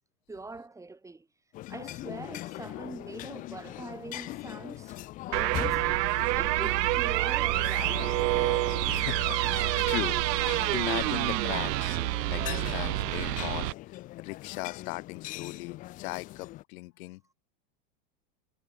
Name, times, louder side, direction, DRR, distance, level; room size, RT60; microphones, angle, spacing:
voice 1, 0.3-1.3 1.7-5.0 5.3-8.4, right 3 dB, 5° right, 1.9 m, -43 dB
sound 1, 1.5-16.6, left 17 dB, 20° left, 0.4 m, -41 dB
sound 2, 5.3-13.7, right 19 dB, 85° right, 0.6 m, -27 dB
voice 2, 8.8-12.0 12.3-17.2, left 22 dB, 60° left, 0.6 m, -38 dB
supercardioid pair, 140°, 48 cm